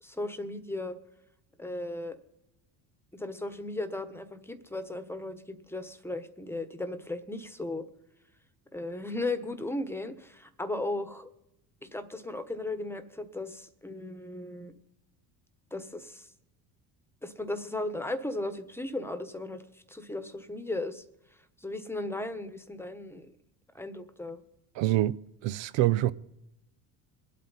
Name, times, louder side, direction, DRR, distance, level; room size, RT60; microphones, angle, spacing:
voice 1, 0.0-1.0 1.6-2.2 3.1-7.9 8.7-11.3 11.9-14.7 15.7-16.3 17.2-19.6 19.9-21.0 21.6-23.3 23.7-24.4, left 2 dB, 5° left, 1.2 m, -36 dB
voice 2, 24.7-25.2 25.4-26.1, right 15 dB, 70° right, 0.7 m, -25 dB
23.0 x 8.5 x 4.1 m
supercardioid pair, 95°, 47 cm